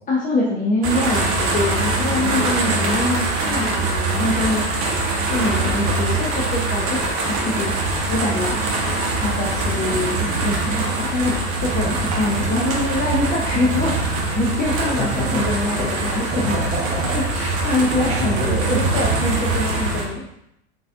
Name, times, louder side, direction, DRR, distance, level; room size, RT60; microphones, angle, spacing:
voice 1, 0.1-4.6 5.2-8.6 9.2-13.9 14.3-16.6 17.1-20.2, left 2 dB, 20° left, -3 dB, 0.7 m, -24 dB
sound 1, 0.8-20.0, right 2 dB, 35° right, 1.2 m, -23 dB
voice 2, 2.3-3.1 8.4-10.6 14.8-15.5 15.8-17.6 17.9-18.8, equal, 20° right, -5 dB, 1.5 m, -30 dB
4.0 x 3.9 x 2.7 m, 0.79 s
hypercardioid pair, 90°, 37 cm